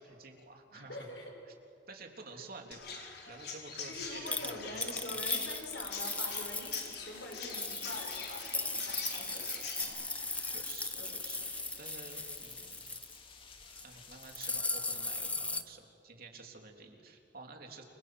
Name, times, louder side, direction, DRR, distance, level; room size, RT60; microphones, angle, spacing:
voice 1, 0.0-1.0 1.9-5.2 9.8-11.5 11.8-12.8 13.8-17.8, right 3 dB, 55° right, 2 dB, 3.4 m, -50 dB
voice 2, 0.7-1.3 3.9-9.8 10.9-11.2, left 2 dB, 85° left, 1 dB, 6.7 m, -45 dB
Chirp tweet, 2.7-9.8, left 5 dB, 60° left, 5.1 m, -44 dB
sound 1, 4.3-6.9 7.3-13.2 13.6-13.8 14.1-15.6, left 3 dB, 5° left, 0.9 m, -37 dB
sound 2, 6.4-14.6, left 5 dB, 30° left, 2.7 m, -54 dB
29.5 x 25.0 x 7.9 m, 2.4 s
head